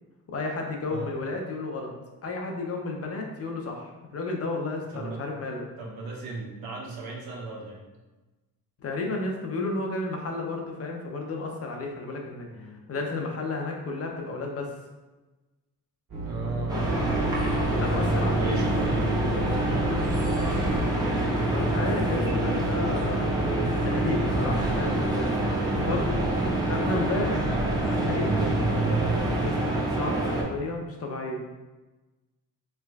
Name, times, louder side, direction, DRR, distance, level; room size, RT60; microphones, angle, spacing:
voice 1, 0.3-1.9 2.2-5.6 8.8-14.7 17.7-18.9 21.4-23.4 23.8-25.3 25.8-27.5 27.8-28.4 29.4-31.4, left 3 dB, 40° left, 1 dB, 0.6 m, -32 dB
voice 2, 4.9-5.2 5.8-7.8 12.5-12.8 16.2-17.0 18.2-20.7 24.6-24.8, right 3 dB, 80° right, -3 dB, 1.0 m, -37 dB
sound 1, 16.1-29.2, right 1 dB, 55° right, 1.5 m, -31 dB
sound 2, 16.7-30.4, right 2 dB, 10° right, 0.7 m, -27 dB
3.3 x 3.0 x 2.2 m, 1.2 s
cardioid pair, 100°, 36 cm